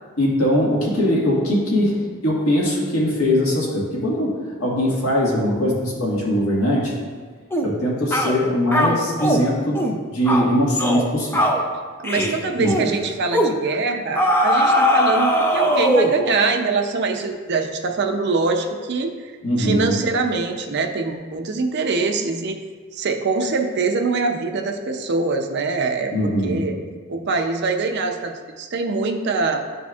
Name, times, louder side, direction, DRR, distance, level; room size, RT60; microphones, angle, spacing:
voice 1, 0.2-2.0 2.2-4.3 4.6-6.9 7.6-11.5 12.1-12.2 12.6-12.7 19.4-19.9 26.1-26.6, equal, 75° left, -4 dB, 1.7 m, -21 dB
sound 1, 7.5-7.7 8.1-8.3 8.7-9.4 9.8-10.0 10.3-10.5 10.8-11.1 11.3-11.6 12.0-12.3 12.7-12.9 13.3-13.6 14.2-16.2, equal, 10° left, 0.4 m, -19 dB
voice 2, 12.0-19.3 19.6-22.6 22.9-26.8 27.1-29.6, right 4 dB, 50° right, 4 dB, 0.5 m, -23 dB
11.0 x 4.2 x 2.3 m, 1.5 s
head